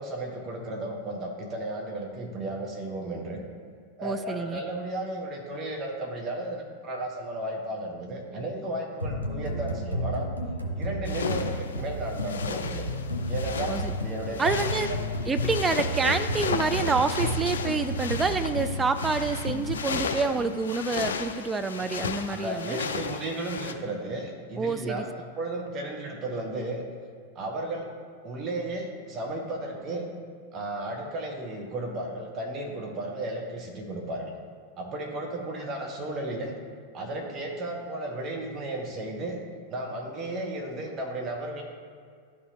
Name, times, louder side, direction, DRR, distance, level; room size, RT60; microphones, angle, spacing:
voice 1, 0.0-3.4 4.0-10.3 10.8-12.9 13.3-14.6 20.3-20.5 22.3-25.0 25.4-26.8 27.3-27.9 28.2-30.1 30.5-34.3 34.8-36.5 36.9-39.4 39.7-41.6, right 1 dB, 30° right, 1 dB, 1.2 m, -34 dB
voice 2, 4.0-4.6 13.7-14.0 14.4-14.9 15.3-22.8 24.6-25.1, right 4 dB, 15° right, 10 dB, 0.3 m, -28 dB
sound 1, 9.0-20.0, equal, 85° left, 0.8 m, -32 dB
sound 2, 11.1-23.7, left 6 dB, 65° left, 0.4 m, -34 dB
11.5 x 4.2 x 2.8 m, 2.2 s
figure-of-eight pair, 90°, 0 cm